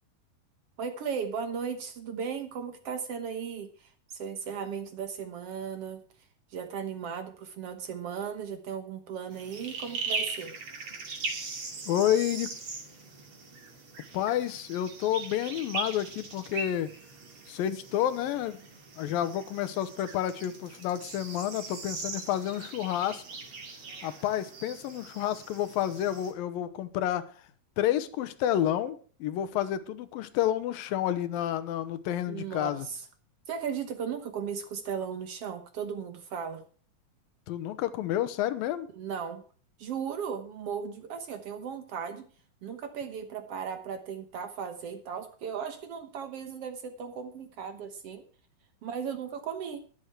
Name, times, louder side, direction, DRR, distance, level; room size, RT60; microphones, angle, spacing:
voice 1, 0.8-6.0 6.5-10.5 32.3-33.0 33.5-36.6 39.0-39.4 39.8-42.2 42.6-48.2 48.8-49.8, right 7 dB, 65° right, 8 dB, 1.5 m, -36 dB
sound 1, 9.3-26.3, right 4 dB, 40° right, 3.0 m, -40 dB
voice 2, 11.9-12.5 14.1-16.9 17.5-18.6 19.0-23.2 24.0-27.3 27.8-32.9 37.5-38.9, left 11 dB, 80° left, 13 dB, 2.6 m, -30 dB
12.5 x 11.5 x 4.7 m, 0.41 s
omnidirectional pair, 4.2 m